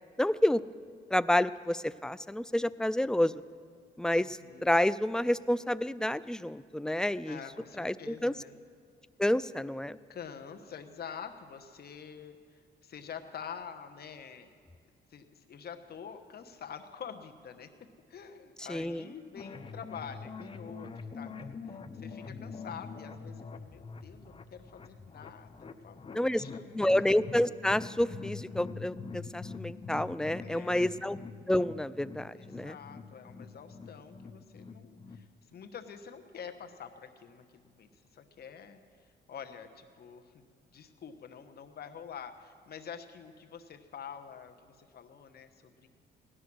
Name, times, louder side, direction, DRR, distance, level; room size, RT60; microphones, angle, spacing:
voice 1, 0.2-0.6 1.1-3.3 4.0-7.4 7.8-8.3 9.2-10.0 18.7-19.0 26.1-26.4 26.7-31.2 31.5-32.7, left 1 dB, 5° left, 16 dB, 0.3 m, -29 dB
voice 2, 4.2-4.8 7.3-8.6 10.1-14.5 15.1-17.7 18.1-27.1 30.4-31.0 32.3-38.8 39.3-45.9, left 7 dB, 50° left, 6 dB, 1.1 m, -47 dB
sound 1, 19.4-35.3, left 4 dB, 25° left, 0.7 m, -45 dB
17.0 x 11.0 x 6.1 m, 2.2 s
cardioid pair, 90°, 20 cm